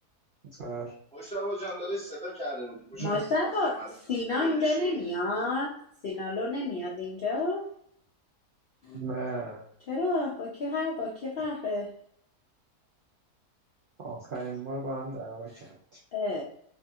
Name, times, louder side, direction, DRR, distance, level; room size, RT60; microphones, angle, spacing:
voice 1, 0.6-0.9 3.0-3.2 8.9-9.7 14.0-16.0, right 3 dB, 90° right, -4 dB, 0.4 m, -36 dB
voice 2, 1.1-3.5 3.7-3.9 4.3-4.9, equal, 5° left, -6 dB, 0.5 m, -37 dB
voice 3, 3.0-5.8 6.0-7.7 8.8-9.0 9.9-12.0 16.1-16.4, left 2 dB, 90° left, -3 dB, 0.5 m, -30 dB
2.7 x 2.3 x 2.6 m, 0.66 s
omnidirectional pair, 1.6 m